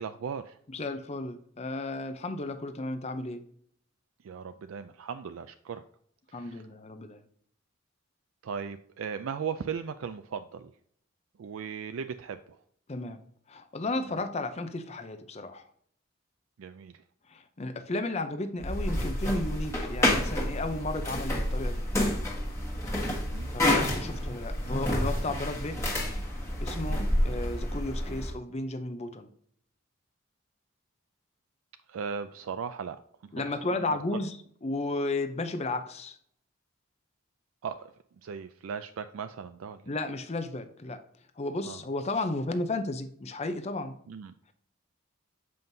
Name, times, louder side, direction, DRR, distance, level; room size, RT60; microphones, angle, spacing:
voice 1, 0.0-0.6 4.2-5.8 6.3-6.7 8.4-10.7 11.4-12.6 14.1-14.2 16.6-17.0 23.0-23.5 26.9-27.2 31.9-33.0 33.3-34.2 37.6-37.9 38.2-39.9 41.6-41.8 44.1-44.3, right 6 dB, 75° right, 10 dB, 0.4 m, -38 dB
voice 2, 0.7-3.4 6.3-7.2 12.9-13.2 13.5-15.6 17.3-21.8 23.5-26.0 26.6-29.3 33.3-34.3 34.6-36.2 39.9-41.0 41.4-44.0, left 2 dB, 30° left, 8 dB, 0.5 m, -33 dB
sound 1, 18.6-28.3, left 1 dB, 15° left, 1.3 m, -29 dB
7.6 x 5.3 x 2.7 m, 0.64 s
head